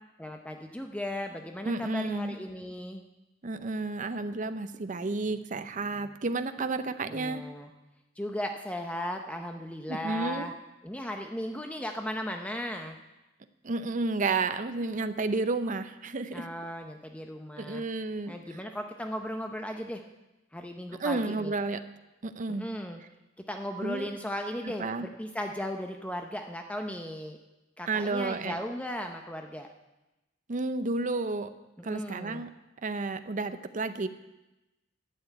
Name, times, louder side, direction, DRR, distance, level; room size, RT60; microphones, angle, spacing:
voice 1, 0.2-3.0 7.0-7.7 8.2-10.5 10.8-13.0 16.3-17.8 18.3-20.0 20.5-21.5 22.5-23.0 23.5-27.4 27.8-29.7 31.8-32.4, equal, 5° left, 4 dB, 0.7 m, -36 dB
voice 2, 1.7-2.4 3.4-7.4 9.9-10.5 13.6-16.5 17.6-18.3 21.0-21.8 22.2-22.6 23.8-24.1 24.8-25.1 27.9-28.6 30.5-31.5 31.8-32.5 32.8-34.1, right 3 dB, 40° right, 10 dB, 0.6 m, -31 dB
11.5 x 7.0 x 8.9 m, 1.0 s
head